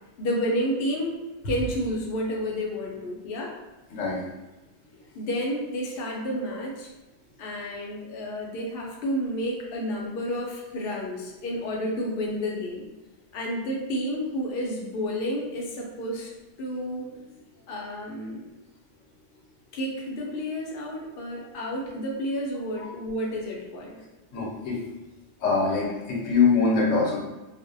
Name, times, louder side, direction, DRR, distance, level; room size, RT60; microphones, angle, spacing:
voice 1, 0.2-1.2 1.4-3.5 5.1-6.9 7.4-12.9 13.3-16.3 16.6-17.1 17.7-18.4 19.7-24.0, equal, 60° left, -2 dB, 0.7 m, -30 dB
voice 2, 24.3-24.8 25.4-27.2, left 4 dB, 80° left, -3 dB, 1.0 m, -23 dB
2.5 x 2.0 x 2.5 m, 1.1 s
omnidirectional pair, 1.3 m